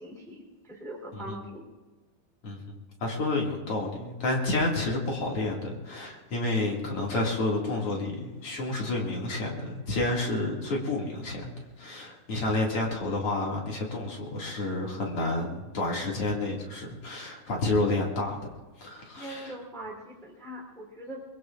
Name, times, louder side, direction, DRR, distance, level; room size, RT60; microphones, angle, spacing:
voice 1, 0.0-1.6 19.1-21.2, right 1 dB, ahead, -3 dB, 3.0 m, -41 dB
voice 2, 2.4-18.4 18.8-19.6, left 2 dB, 45° left, -1 dB, 3.0 m, -30 dB
24.0 x 22.0 x 2.5 m, 1.3 s
omnidirectional pair, 3.8 m